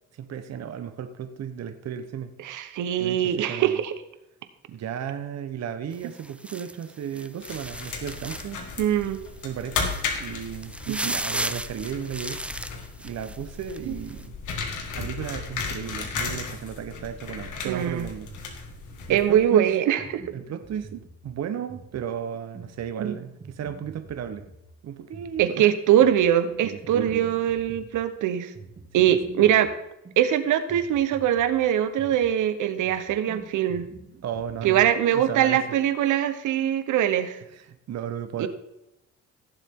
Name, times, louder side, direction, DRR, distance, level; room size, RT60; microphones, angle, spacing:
voice 1, 0.1-2.3 3.0-3.8 4.7-8.6 9.4-12.4 13.0-14.4 14.9-18.3 19.1-19.7 20.3-20.9 21.2-24.5 24.8-25.7 26.6-27.3 29.0-29.2 34.2-35.6 37.5-38.5, right 8 dB, 60° right, 9 dB, 1.0 m, -34 dB
voice 2, 2.4-3.9 8.8-9.2 10.9-11.1 13.9-14.0 17.6-18.1 19.1-20.3 23.0-23.1 25.4-28.5 28.9-29.7 30.2-33.9 34.6-37.4 38.4-38.5, right 10 dB, 80° right, 11 dB, 1.1 m, -22 dB
sound 1, 5.9-8.6 9.0-9.2 9.6-13.8 14.1-14.2, right 1 dB, 5° right, 0.5 m, -35 dB
sound 2, 7.4-19.5, left 5 dB, 80° left, 2.0 m, -35 dB
sound 3, 18.3-34.9, right 4 dB, 40° right, 2.3 m, -47 dB
16.5 x 7.3 x 3.7 m, 0.85 s
cardioid pair, 90°, 30 cm